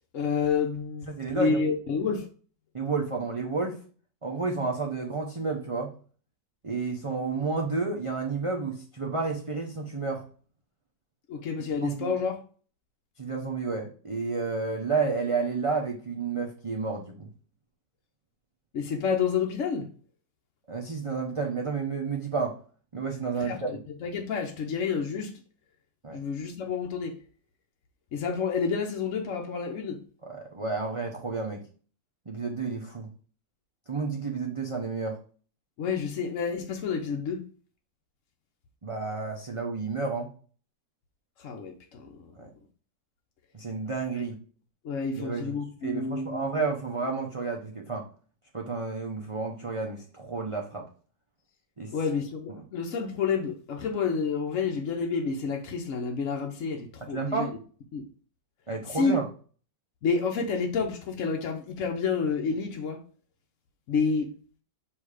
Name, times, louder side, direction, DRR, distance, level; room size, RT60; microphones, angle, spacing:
voice 1, 0.1-1.1 1.3-2.2 11.3-12.4 18.7-19.8 23.4-23.6 24.0-25.3 26.1-27.1 28.1-30.0 35.8-37.4 41.4-42.0 44.8-46.5 51.9-57.5 57.9-58.0 58.9-59.1 60.0-63.0 63.9-64.3, left 5 dB, 55° left, 0.9 m, -29 dB
voice 2, 1.1-1.6 2.7-3.8 4.2-5.9 6.6-10.2 11.8-12.2 13.2-17.3 20.7-22.6 22.9-23.8 26.0-26.2 30.2-31.6 32.3-33.1 33.9-35.2 38.8-40.3 42.4-42.5 43.5-44.4 45.2-48.1 48.5-50.9 51.8-51.9 52.5-52.7 57.0-57.5 58.7-59.3, right 4 dB, 45° right, 0.4 m, -31 dB
7.2 x 2.8 x 4.8 m
omnidirectional pair, 1.9 m